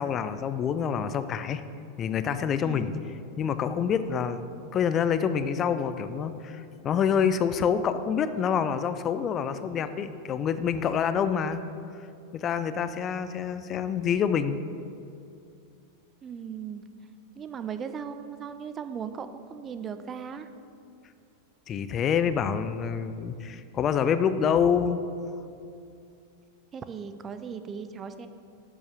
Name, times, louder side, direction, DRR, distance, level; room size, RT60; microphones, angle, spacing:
voice 1, 0.0-1.6 2.0-2.9 3.4-4.5 4.7-11.6 12.3-14.6 21.7-25.0, left 7 dB, 30° left, 12 dB, 0.6 m, -27 dB
voice 2, 2.6-2.9 16.2-16.8 17.3-20.5 26.7-28.3, right 7 dB, 25° right, 10 dB, 0.7 m, -37 dB
12.0 x 8.6 x 6.2 m, 2.5 s
figure-of-eight pair, 90°, 0 cm